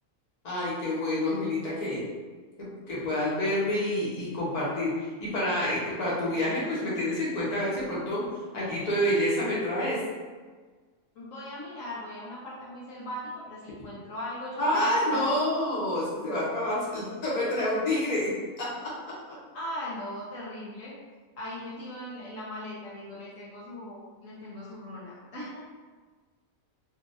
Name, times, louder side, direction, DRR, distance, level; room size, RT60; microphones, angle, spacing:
voice 1, 0.4-2.0 2.6-4.9 5.2-8.2 8.5-10.0 14.6-19.1, left 1 dB, 30° left, -7 dB, 0.9 m, -28 dB
voice 2, 11.2-15.4 19.5-20.9 21.4-25.6, left 1 dB, 65° left, -7 dB, 1.0 m, -39 dB
3.9 x 2.4 x 2.5 m, 1.4 s
omnidirectional pair, 1.6 m